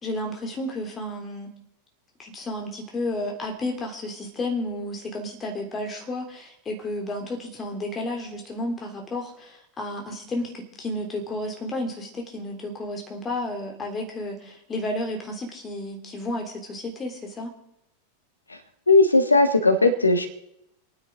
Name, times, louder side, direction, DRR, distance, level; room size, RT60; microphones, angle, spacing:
voice 1, 0.0-1.5 2.2-17.5, left 1 dB, 20° left, 2 dB, 3.3 m, -32 dB
voice 2, 18.9-20.3, left 2 dB, 80° left, 9 dB, 1.4 m, -17 dB
28.5 x 9.9 x 3.7 m, 0.80 s
figure-of-eight pair, 90°, 0 cm